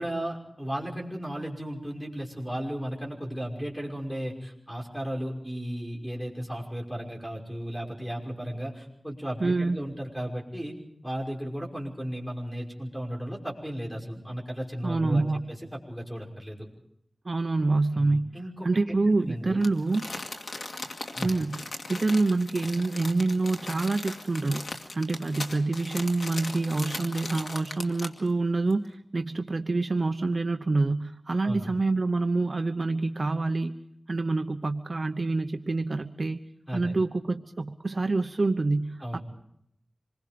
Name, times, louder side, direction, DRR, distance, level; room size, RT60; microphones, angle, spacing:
voice 1, 0.0-10.8 11.0-16.7 17.9-19.6 21.1-21.3 31.4-31.7 36.7-36.9 39.0-39.2, equal, 5° left, 0 dB, 5.7 m, -35 dB
voice 2, 9.4-9.8 14.8-15.5 17.2-18.4 18.6-20.1 21.2-21.6 21.9-33.8 34.1-36.4 36.7-39.2, right 3 dB, 50° right, 7 dB, 0.9 m, -27 dB
Crumpling crinkling, 19.6-28.3 28.7-28.8, left 2 dB, 80° left, 2.3 m, -38 dB
26.5 x 22.0 x 5.1 m, 0.72 s
wide cardioid pair, 75°, 0 cm